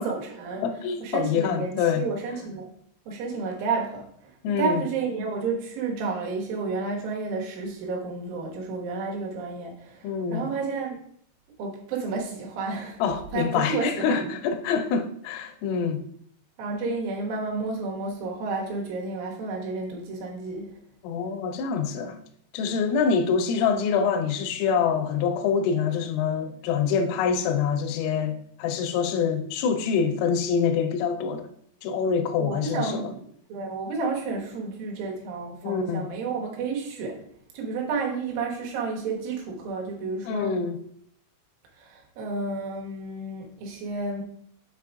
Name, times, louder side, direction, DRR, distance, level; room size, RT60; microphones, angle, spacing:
voice 1, 0.0-0.6 1.0-2.7 3.1-11.0 11.6-13.0 13.3-14.2 16.6-20.8 32.4-33.2 33.5-37.2 37.5-40.5 41.8-44.2, right 4 dB, 70° right, 2.3 m, -31 dB
voice 2, 0.6-2.0 4.4-4.8 10.0-10.5 13.0-16.0 21.0-22.2 22.5-31.5 31.8-33.1 35.6-36.1 40.2-40.8, left 6 dB, 90° left, 3.2 m, -25 dB
7.6 x 4.4 x 3.5 m
omnidirectional pair, 5.7 m